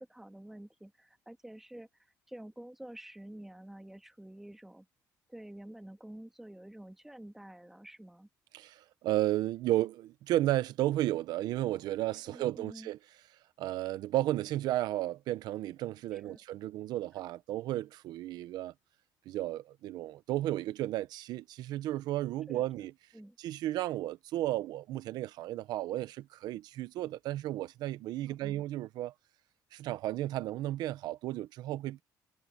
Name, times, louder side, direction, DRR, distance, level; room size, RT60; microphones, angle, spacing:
voice 1, 0.1-1.9 2.3-4.9 5.3-8.3 12.2-12.9 16.1-16.4 22.5-22.9 23.1-23.4 28.3-28.6, right 1 dB, 5° right, 1.6 m, -49 dB
voice 2, 8.5-13.0 13.6-18.7 19.3-22.9 23.4-29.1 29.7-32.0, right 15 dB, 75° right, 0.8 m, -33 dB
cardioid pair, 165°, 7 cm